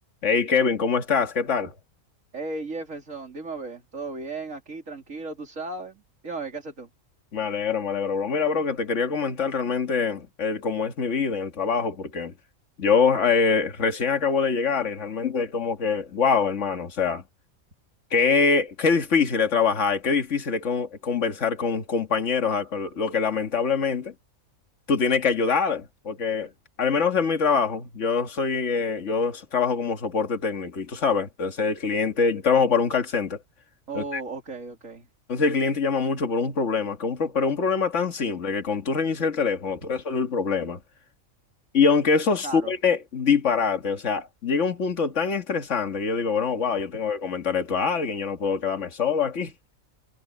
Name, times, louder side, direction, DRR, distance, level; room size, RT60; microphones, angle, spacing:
voice 1, 0.2-1.7 7.3-12.3 12.8-17.2 18.1-24.1 24.9-26.5 26.8-33.4 33.9-34.2 35.3-40.8 41.7-49.5, left 5 dB, 60° left, 2.1 m, -24 dB
voice 2, 2.3-6.9 33.9-35.1 42.4-42.7, right 3 dB, 65° right, 3.7 m, -35 dB
omnidirectional pair, 1.5 m